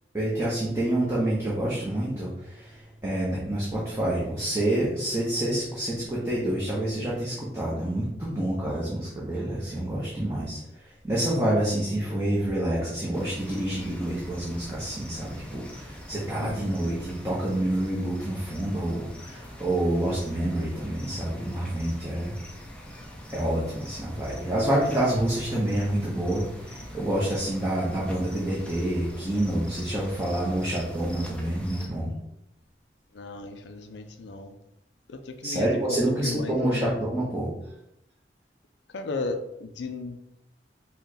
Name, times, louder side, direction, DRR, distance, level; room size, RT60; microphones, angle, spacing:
voice 1, 0.1-22.4 23.3-32.1 35.4-37.5, right 1 dB, 15° right, -7 dB, 0.9 m, -28 dB
sound 1, 13.1-31.9, equal, 5° left, 0.5 m, -43 dB
voice 2, 16.4-16.8 33.1-34.5 35.1-36.0 36.2-36.9 38.9-40.2, left 3 dB, 80° left, 7 dB, 0.5 m, -35 dB
5.6 x 2.3 x 4.0 m, 0.82 s
head